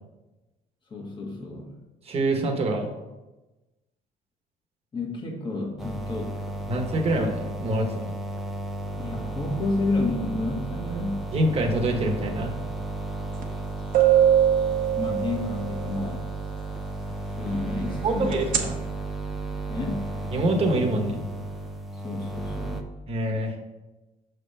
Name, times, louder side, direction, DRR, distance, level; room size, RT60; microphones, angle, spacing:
voice 1, 0.9-1.7 4.9-6.3 9.0-11.3 14.6-14.7 14.9-16.2 17.4-18.6 19.7-20.1 21.9-22.8, left 2 dB, 30° left, -1 dB, 1.4 m, -30 dB
voice 2, 2.0-2.9 6.7-8.1 11.3-12.6 18.0-18.8 20.3-21.3 23.1-23.5, right 1 dB, 35° right, 2 dB, 1.1 m, -25 dB
sound 1, 5.8-22.8, right 2 dB, ahead, 0.6 m, -33 dB
sound 2, 13.4-13.5 13.9-15.7 18.3-18.6, right 10 dB, 55° right, 0.9 m, -20 dB
6.1 x 3.4 x 5.4 m, 1.1 s
cardioid pair, 110°, 17 cm